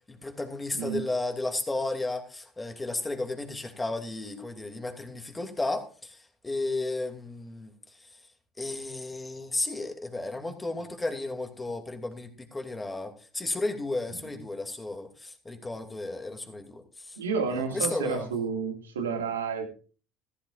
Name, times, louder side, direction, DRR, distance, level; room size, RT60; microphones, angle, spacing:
voice 1, 0.1-7.7 8.6-17.2 17.5-18.3, left 2 dB, 15° left, 5 dB, 2.6 m, -33 dB
voice 2, 0.7-1.0 14.2-14.3 17.2-19.7, right 5 dB, 85° right, 4 dB, 2.1 m, -30 dB
15.0 x 14.0 x 2.5 m, 0.38 s
hypercardioid pair, 65°, 0 cm